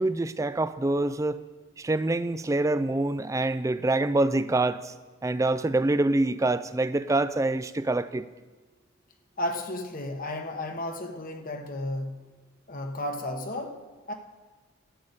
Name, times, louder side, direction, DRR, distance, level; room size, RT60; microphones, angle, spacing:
voice 1, 0.0-1.4 1.8-4.9 5.2-8.3, right 2 dB, 15° right, 0.3 m, -25 dB
voice 2, 9.4-12.4 12.7-14.1, left 1 dB, 40° left, 1.0 m, -33 dB
12.5 x 8.6 x 6.6 m
head